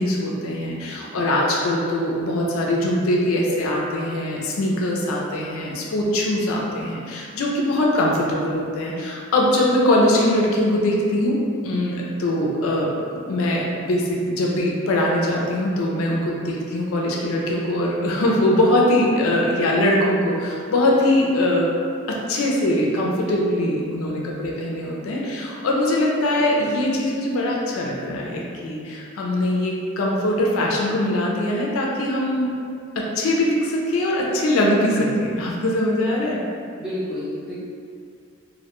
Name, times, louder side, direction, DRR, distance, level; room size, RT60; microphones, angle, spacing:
voice 1, 0.0-21.7 22.1-32.5 33.0-36.4, left 1 dB, 75° left, -2 dB, 0.4 m, -22 dB
voice 2, 23.2-24.0 36.8-37.5, equal, 5° right, -13 dB, 0.6 m, -30 dB
2.1 x 2.1 x 2.9 m, 2.3 s
head